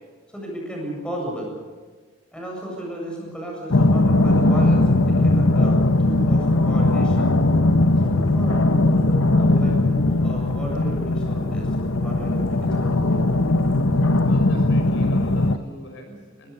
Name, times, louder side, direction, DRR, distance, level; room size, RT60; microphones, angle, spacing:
voice 1, 0.3-1.5 2.3-7.3 8.0-13.2, right 1 dB, 5° left, -2 dB, 7.7 m, -34 dB
sound 1, 3.7-15.6, left 2 dB, 90° left, 1.2 m, -19 dB
voice 2, 14.2-16.5, equal, 60° left, 3 dB, 5.9 m, -41 dB
24.5 x 21.0 x 6.9 m, 1.5 s
head